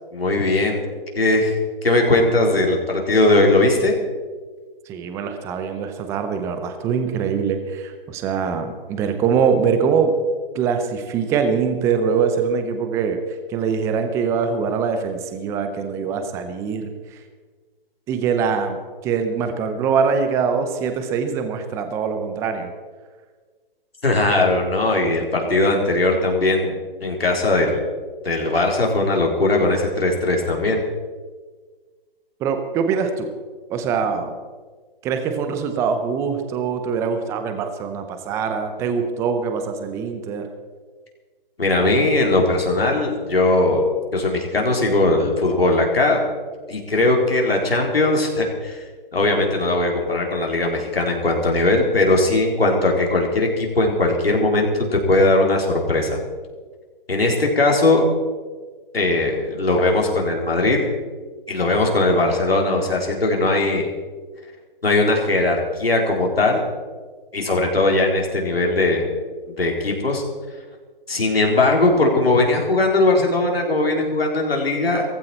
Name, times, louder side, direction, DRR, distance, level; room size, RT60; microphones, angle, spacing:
voice 1, 0.1-0.8 1.1-1.6 1.8-4.0 24.0-27.8 28.2-30.8 41.6-43.8 44.1-46.2 46.7-48.8 49.1-56.2 57.1-58.0 58.9-60.9 61.5-63.9 64.8-66.6 67.3-69.1 69.6-70.2 71.1-75.1, left 2 dB, 85° left, 0 dB, 4.1 m, -19 dB
voice 2, 4.9-10.1 10.5-17.2 18.1-22.7 32.4-33.3 33.7-34.4 35.0-40.5, right 6 dB, 10° right, 8 dB, 0.7 m, -23 dB
17.0 x 15.0 x 4.4 m, 1.5 s
figure-of-eight pair, 145°, 29 cm